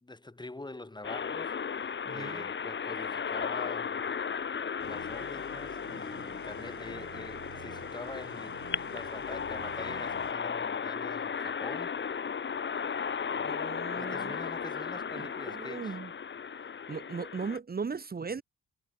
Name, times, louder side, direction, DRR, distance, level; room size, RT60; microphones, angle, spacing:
voice 1, 0.0-4.1 4.8-12.3 13.9-16.0, left 2 dB, 15° left, 3.0 m, -45 dB
sound 1, 1.0-17.6, left 6 dB, 40° left, 2.0 m, -35 dB
voice 2, 2.0-2.4 13.3-14.4 15.2-16.1 16.9-18.4, right 5 dB, 30° right, 2.0 m, -38 dB
sound 2, 4.8-10.3, right 11 dB, 70° right, 3.6 m, -51 dB
cardioid pair, 90°, 30 cm